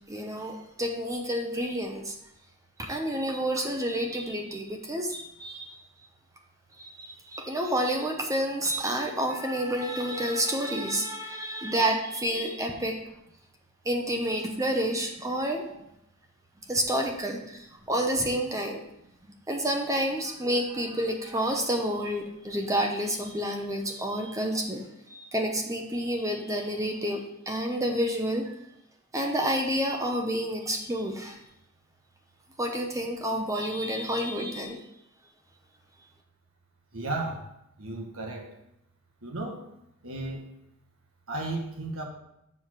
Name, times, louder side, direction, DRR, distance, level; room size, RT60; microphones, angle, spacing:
voice 1, 0.1-2.1 2.8-5.7 6.8-13.0 13.8-15.6 16.7-18.8 19.5-28.5 29.1-31.4 32.6-34.8, right 1 dB, 15° right, 2 dB, 0.8 m, -29 dB
voice 2, 36.9-37.4 37.8-38.5 39.2-39.6 40.0-40.4 41.3-42.1, right 2 dB, 70° right, 1 dB, 1.6 m, -34 dB
7.0 x 5.0 x 5.8 m, 0.81 s
head